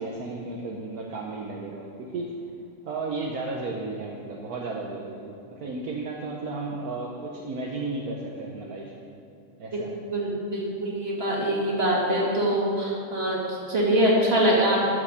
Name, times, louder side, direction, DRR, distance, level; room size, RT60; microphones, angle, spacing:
voice 1, 0.0-2.6 2.8-8.9 9.6-10.0, right 3 dB, 70° right, -2 dB, 1.4 m, -34 dB
voice 2, 10.1-14.8, right 1 dB, 40° right, -4 dB, 2.5 m, -24 dB
13.5 x 5.6 x 6.6 m, 2.5 s
omnidirectional pair, 1.7 m